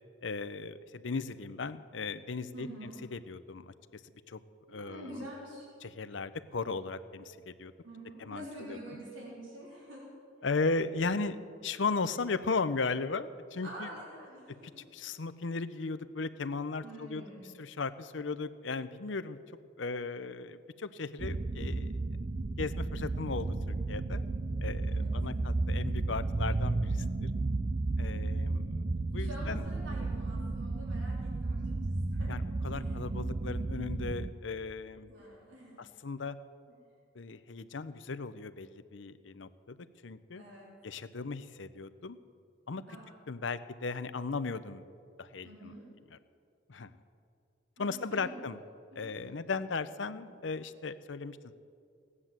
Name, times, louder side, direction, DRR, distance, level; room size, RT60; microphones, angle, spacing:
voice 1, 0.2-3.7 4.3-4.4 4.7-5.3 5.8-7.7 8.2-8.8 10.4-11.4 11.6-13.9 14.9-17.2 17.6-19.4 19.8-22.0 22.6-24.3 24.6-27.3 28.0-28.8 29.1-29.6 32.3-35.1 35.8-36.4 37.1-39.8 40.0-40.4 40.8-42.2 42.7-42.8 43.3-44.8 45.2-45.7 46.7-46.9 47.8-48.6 49.0-51.5, left 4 dB, 75° left, 13 dB, 0.7 m, -36 dB
voice 2, 2.5-2.9 4.7-5.7 7.8-10.0 13.6-14.8 15.1-15.2 16.8-17.5 24.9-25.1 29.2-32.3 32.7-33.0 35.1-35.9 36.7-36.8 40.3-40.8 42.9-43.0 45.4-45.9 47.8-48.4 48.9-49.2 50.1-50.2, right 1 dB, 80° right, -5 dB, 4.0 m, -47 dB
sound 1, 21.2-34.3, right 2 dB, 35° right, 0.5 m, -33 dB
17.5 x 9.8 x 7.5 m, 2.4 s
head